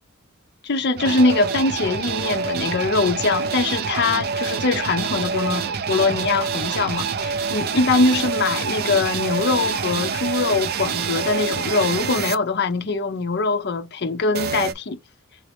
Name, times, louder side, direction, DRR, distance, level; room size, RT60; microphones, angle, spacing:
voice 1, 0.6-15.0, left 3 dB, 50° left, 0.6 m, -22 dB
sound 1, 1.0-12.3 14.3-14.7, right 6 dB, 45° right, 0.5 m, -26 dB
3.9 x 2.8 x 3.3 m
head